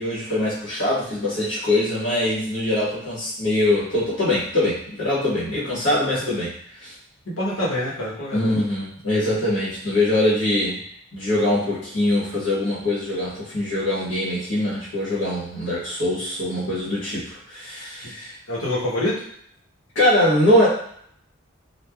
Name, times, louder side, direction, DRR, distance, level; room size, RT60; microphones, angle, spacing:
voice 1, 0.0-6.9 8.3-10.8 11.1-18.3 19.9-20.7, left 1 dB, 60° left, -9 dB, 1.3 m, -23 dB
voice 2, 7.3-8.6 18.0-18.1 18.5-19.2, left 1 dB, 75° left, -6 dB, 1.0 m, -26 dB
3.2 x 2.3 x 2.3 m, 0.66 s
head